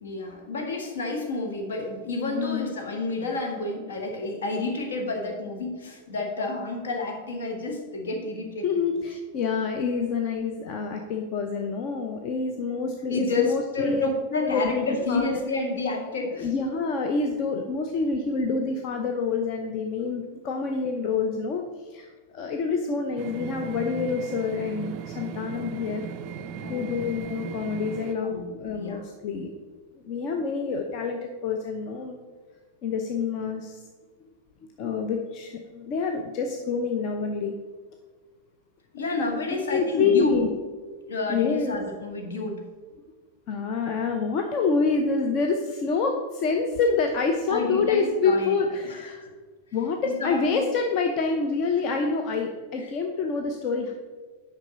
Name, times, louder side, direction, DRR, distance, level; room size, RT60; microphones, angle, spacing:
voice 1, 0.0-8.7 12.7-16.5 20.0-20.1 26.6-26.9 28.2-29.0 38.9-40.4 41.1-42.6 47.5-48.5 49.2-49.3 50.0-50.7, left 3 dB, 65° left, 2 dB, 1.5 m, -30 dB
voice 2, 2.2-2.7 8.6-14.1 14.4-15.4 16.4-21.6 21.9-22.1 22.3-26.1 26.7-29.5 30.0-32.2 32.8-33.8 34.8-37.5 39.2-39.4 39.7-40.5 41.3-41.8 43.5-49.2 49.7-53.9, left 4 dB, 40° left, 3 dB, 0.7 m, -27 dB
sound 1, 23.2-28.1, right 6 dB, 40° right, 0.5 m, -37 dB
9.0 x 5.7 x 4.0 m, 1.4 s
figure-of-eight pair, 90°, 0 cm